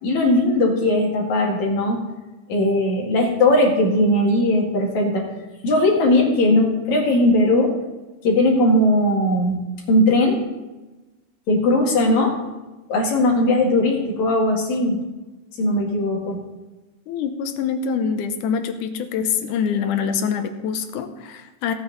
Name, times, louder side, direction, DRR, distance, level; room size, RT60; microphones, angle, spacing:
voice 1, 0.0-2.0 2.5-5.3 5.6-7.7 8.2-9.6 9.9-10.4 11.5-12.4 12.9-15.0 15.6-16.4, left 1 dB, 70° left, -1 dB, 3.5 m, -18 dB
voice 2, 17.1-21.7, left 6 dB, 85° left, 8 dB, 2.4 m, -25 dB
16.5 x 8.9 x 4.0 m, 1.1 s
omnidirectional pair, 3.5 m